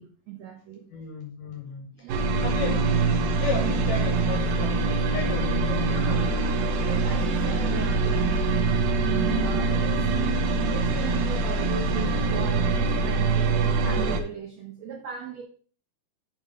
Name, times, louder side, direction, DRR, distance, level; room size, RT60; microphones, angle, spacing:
voice 1, 0.0-0.9 1.9-2.4 3.2-3.7 5.9-6.3 6.8-15.4, right 6 dB, 90° right, 0 dB, 1.5 m, -38 dB
voice 2, 0.9-1.9 2.4-3.0 3.4-4.8 5.1-6.4, left 5 dB, 70° left, 2 dB, 2.1 m, -34 dB
sound 1, 2.1-14.2, right 3 dB, 75° right, 2.1 m, -24 dB
7.1 x 4.4 x 5.0 m, 0.43 s
omnidirectional pair, 4.8 m